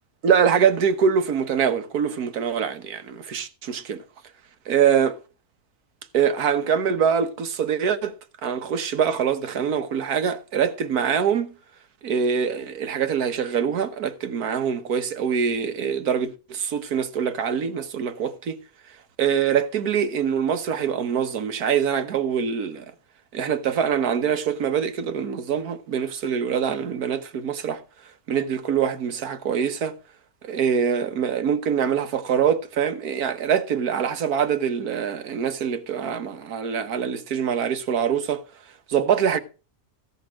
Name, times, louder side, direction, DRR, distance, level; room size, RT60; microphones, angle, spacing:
voice 1, 0.2-4.0 4.7-5.1 6.1-8.1 8.4-11.5 12.0-18.6 19.2-22.9 23.3-27.8 28.3-29.9 30.4-38.4 38.9-39.4, right 7 dB, 85° right, 1.6 m, -24 dB
15.5 x 5.3 x 6.3 m
omnidirectional pair, 1.6 m